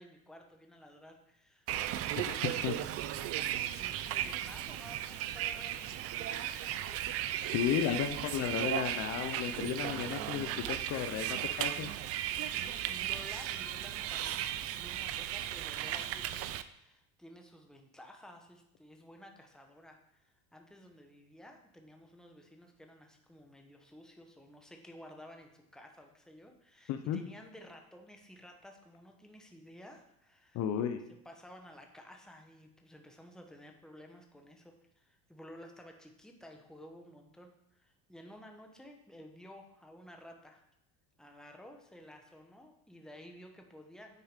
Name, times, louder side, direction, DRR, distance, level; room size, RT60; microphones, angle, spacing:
voice 1, 0.0-2.7 3.0-7.5 12.3-30.8 31.2-40.6 41.2-44.2, equal, ahead, 3 dB, 1.2 m, -54 dB
Bus, 1.7-16.6, right 12 dB, 50° right, 0.5 m, -36 dB
voice 2, 2.2-2.8 7.5-11.9 26.9-27.2 30.5-31.0, left 9 dB, 55° left, 8 dB, 0.7 m, -34 dB
9.5 x 4.7 x 5.0 m, 0.79 s
supercardioid pair, 115°, 31 cm